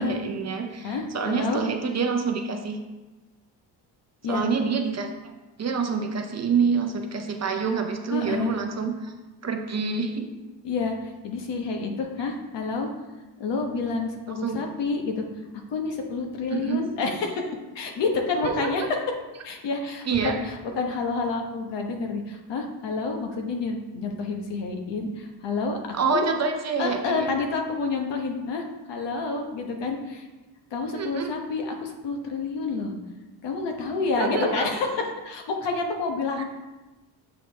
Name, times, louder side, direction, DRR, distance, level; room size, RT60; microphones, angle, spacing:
voice 1, 0.0-2.8 4.3-5.1 5.6-9.1 9.4-10.3 14.3-14.6 16.5-16.8 18.4-18.7 20.1-20.3 25.9-27.3 30.9-31.3 34.2-34.7 36.4-36.5, right 5 dB, 35° right, 4 dB, 0.7 m, -27 dB
voice 2, 0.8-1.6 4.2-4.4 8.1-8.5 10.6-12.9 13.4-15.2 15.7-17.5 17.7-18.8 19.4-26.2 26.8-30.3 30.7-32.9 33.4-36.4, left 4 dB, 60° left, 3 dB, 1.1 m, -29 dB
7.6 x 4.7 x 3.4 m, 1.1 s
cardioid pair, 105°, 47 cm